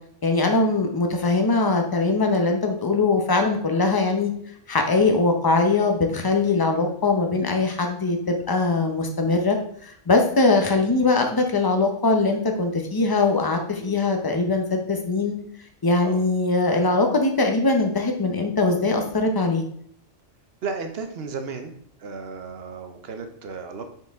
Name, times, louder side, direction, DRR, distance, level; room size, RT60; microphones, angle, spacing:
voice 1, 0.2-4.3 4.7-9.6 9.8-15.4 15.8-19.6, left 3 dB, 25° left, 4 dB, 0.7 m, -21 dB
voice 2, 20.6-21.7 22.0-23.8, right 4 dB, 60° right, 6 dB, 1.0 m, -34 dB
5.9 x 4.6 x 3.5 m, 0.66 s
omnidirectional pair, 1.2 m